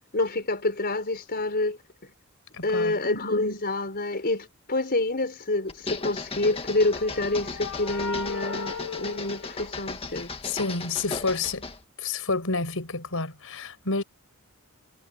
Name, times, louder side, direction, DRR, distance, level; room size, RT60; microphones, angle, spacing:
voice 1, 0.1-1.8 2.6-10.3, left 2 dB, 45° left, 4.6 m, -27 dB
voice 2, 2.5-3.0 10.1-11.6 12.0-14.0, left 3 dB, 65° left, 7.4 m, -29 dB
sound 1, 5.7-11.8, left 3 dB, 25° left, 1.8 m, -36 dB
sound 2, 6.4-10.3, left 5 dB, 90° left, 2.2 m, -38 dB
head